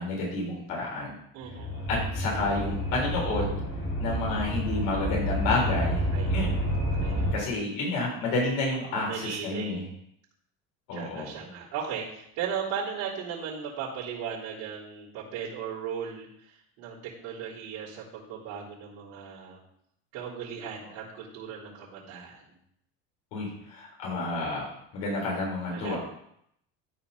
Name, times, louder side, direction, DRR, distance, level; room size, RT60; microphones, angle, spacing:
voice 1, 0.0-1.1 1.9-3.5 4.0-6.6 7.3-9.8 10.9-11.3 23.3-24.7 24.9-26.0, left 2 dB, 75° left, -2 dB, 3.8 m, -30 dB
voice 2, 1.3-1.9 6.1-6.7 7.0-7.4 8.9-9.9 10.9-19.6 20.1-22.6 25.7-26.0, right 7 dB, 80° right, -11 dB, 3.5 m, -37 dB
sound 1, 1.4-7.3, equal, 45° left, 4.2 m, -29 dB
13.0 x 4.4 x 5.4 m, 0.74 s
cardioid pair, 135°, 32 cm